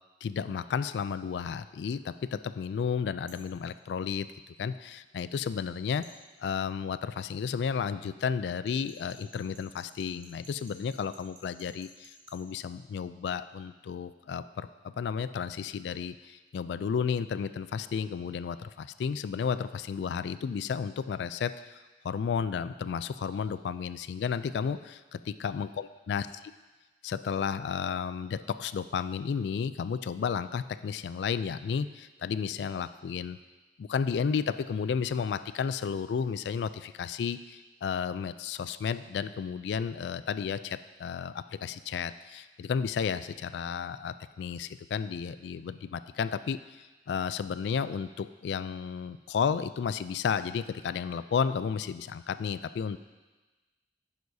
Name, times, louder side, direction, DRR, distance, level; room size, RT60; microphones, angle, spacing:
voice 1, 0.2-4.3 4.6-6.1 6.4-14.7 15.0-21.8 22.0-26.3 27.0-33.4 33.8-46.6 47.1-53.0, left 6 dB, 70° left, 14 dB, 0.3 m, -32 dB
sound 1, 3.3-3.5 6.0-6.2 8.7-12.4, right 1 dB, 75° right, 2.0 m, -54 dB
11.0 x 9.4 x 2.7 m, 1.2 s
head